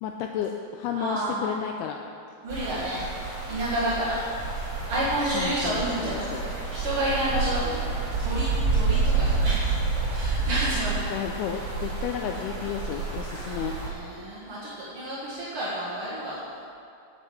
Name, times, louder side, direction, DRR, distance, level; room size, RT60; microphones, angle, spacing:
voice 1, 0.0-2.0 5.3-6.4 11.0-13.8, left 9 dB, 90° left, 3 dB, 2.2 m, -32 dB
voice 2, 0.9-1.5 2.4-3.0 3.5-4.2 4.9-7.9 8.2-9.7 10.0-11.0 13.3-16.4, right 1 dB, 55° right, -9 dB, 1.6 m, -30 dB
sound 1, 2.5-13.9, right 4 dB, 35° right, 2.8 m, -29 dB
8.8 x 8.4 x 7.6 m, 2.5 s
omnidirectional pair, 5.1 m